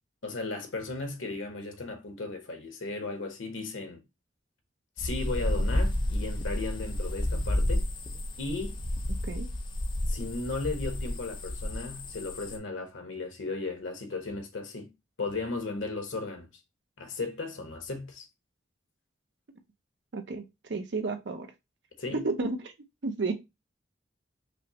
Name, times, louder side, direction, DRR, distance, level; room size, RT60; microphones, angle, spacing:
voice 1, 0.2-4.0 5.0-7.8 8.4-8.8 10.1-14.9 15.2-16.5 17.0-18.3 22.0-22.3, left 3 dB, 90° left, 1.0 m, -35 dB
sound 1, 5.0-12.6, left 1 dB, 25° left, 0.4 m, -31 dB
voice 2, 20.1-20.4 20.7-21.5 22.1-22.7 23.0-23.3, right 3 dB, 65° right, 0.5 m, -31 dB
5.1 x 2.0 x 2.8 m
head